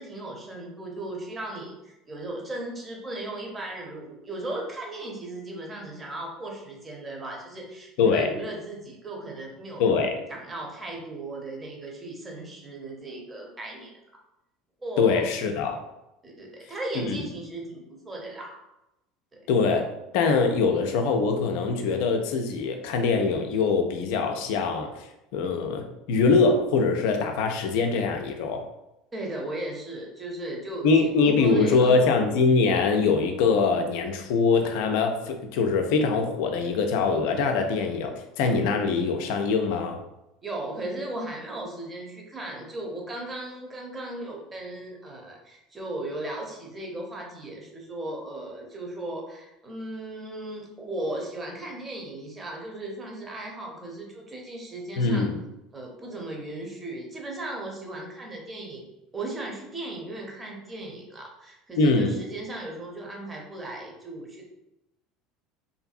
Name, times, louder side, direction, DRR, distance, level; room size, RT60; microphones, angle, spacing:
voice 1, 0.0-9.9 10.3-13.9 14.8-15.2 16.2-18.6 29.1-30.9 31.2-32.0 40.4-55.3 55.7-64.4, right 1 dB, 25° right, 0 dB, 0.8 m, -36 dB
voice 2, 8.0-8.3 9.8-10.2 15.0-15.8 17.0-17.2 19.5-19.8 20.1-25.1 25.3-28.7 30.8-40.0 55.0-55.3 61.8-62.2, left 4 dB, 65° left, 5 dB, 0.4 m, -23 dB
2.6 x 2.6 x 2.4 m, 0.91 s
figure-of-eight pair, 70°, 0 cm